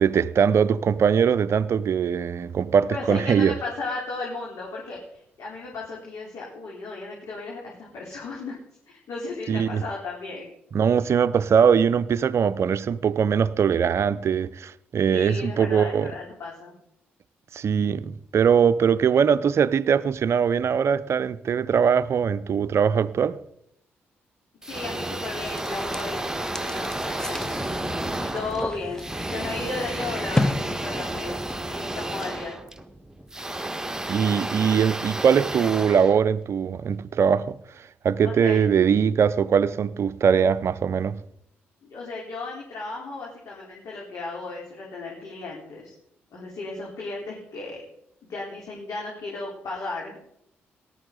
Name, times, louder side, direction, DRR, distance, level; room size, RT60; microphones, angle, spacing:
voice 1, 0.0-3.5 9.5-9.8 10.7-16.1 17.5-23.4 34.1-37.6 38.0-41.2, right 7 dB, 50° right, 0.6 m, -21 dB
voice 2, 2.9-5.0 5.4-8.5 8.9-10.5 15.1-16.7 24.6-27.6 28.2-31.4 31.7-32.5 38.2-38.6 41.8-45.9 46.3-47.8 48.3-50.2, left 3 dB, 55° left, 4.0 m, -35 dB
sound 1, 24.6-36.8, right 1 dB, 10° right, 1.6 m, -32 dB
sound 2, 25.4-32.0, left 2 dB, 10° left, 0.9 m, -33 dB
19.0 x 12.5 x 4.0 m
figure-of-eight pair, 40°, 6 cm